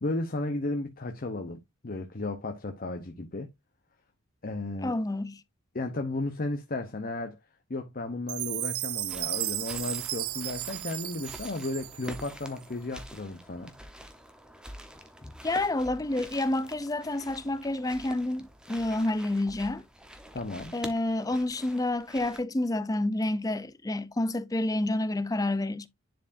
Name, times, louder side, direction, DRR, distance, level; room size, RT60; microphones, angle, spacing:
voice 1, 0.0-3.5 4.4-4.9 5.7-7.4 7.7-13.7 20.3-20.7, left 2 dB, 40° left, 0.8 m, -34 dB
voice 2, 4.8-5.4 15.2-19.8 20.7-25.9, left 1 dB, 15° left, 0.5 m, -29 dB
Chime, 8.3-12.5, right 19 dB, 75° right, 0.4 m, -34 dB
sound 1, 9.1-22.4, equal, 5° right, 0.9 m, -47 dB
10.0 x 4.6 x 2.6 m
head